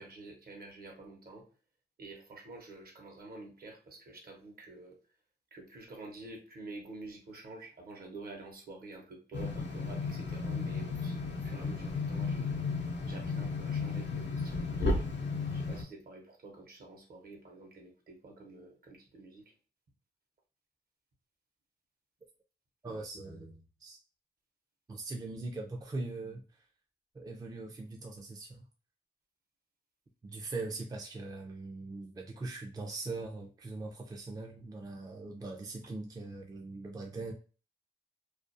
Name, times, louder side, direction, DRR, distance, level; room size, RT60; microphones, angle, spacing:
voice 1, 0.0-1.4 2.0-5.0 5.5-12.6 13.0-15.0 15.5-19.4, right 3 dB, 60° right, 0.8 m, -49 dB
sound 1, 9.3-15.8, left 3 dB, 90° left, 0.6 m, -34 dB
voice 2, 22.8-24.0 24.9-26.4 27.1-28.6 30.2-37.3, right 3 dB, 20° right, 0.4 m, -41 dB
2.4 x 2.3 x 2.5 m
wide cardioid pair, 120°, 18 cm